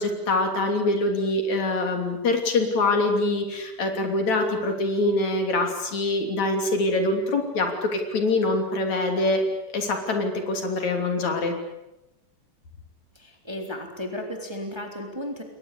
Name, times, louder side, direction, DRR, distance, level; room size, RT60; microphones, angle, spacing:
voice 1, 0.0-9.4 9.7-11.6, left 2 dB, 60° left, 4 dB, 4.4 m, -24 dB
voice 2, 13.1-15.4, left 1 dB, 10° right, 3 dB, 3.2 m, -34 dB
29.0 x 22.0 x 8.4 m, 0.96 s
omnidirectional pair, 3.6 m